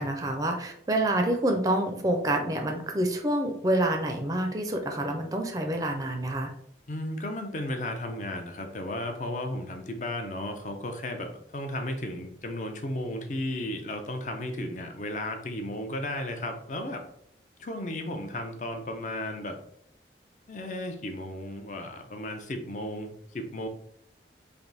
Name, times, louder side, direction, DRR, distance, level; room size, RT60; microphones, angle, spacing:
voice 1, 0.0-6.5, right 1 dB, 20° right, 3 dB, 0.5 m, -27 dB
voice 2, 6.9-17.0 17.6-19.6 20.5-23.7, left 1 dB, 40° left, 5 dB, 0.6 m, -34 dB
3.4 x 2.6 x 4.0 m, 0.67 s
head